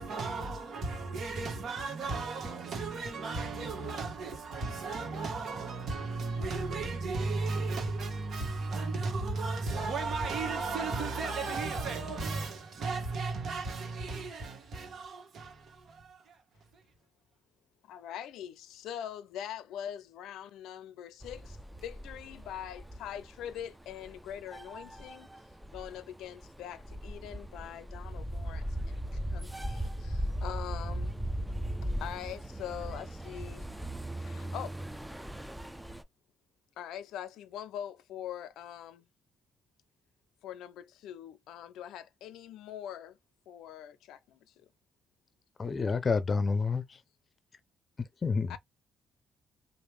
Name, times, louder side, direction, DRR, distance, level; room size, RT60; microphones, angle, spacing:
voice 1, 0.0-16.4 16.7-16.8, right 3 dB, 60° right, 1.5 m, -35 dB
voice 2, 17.8-25.3 25.7-31.3 32.0-33.7 34.2-34.8 36.8-39.1 40.4-43.2 43.5-44.5 48.5-48.6, left 10 dB, 85° left, 0.5 m, -43 dB
sound 1, 21.2-36.0, right 1 dB, 5° right, 0.5 m, -38 dB
voice 3, 45.6-47.0 48.0-48.6, left 4 dB, 40° left, 0.6 m, -29 dB
3.1 x 2.6 x 3.3 m
cardioid pair, 90°, 0 cm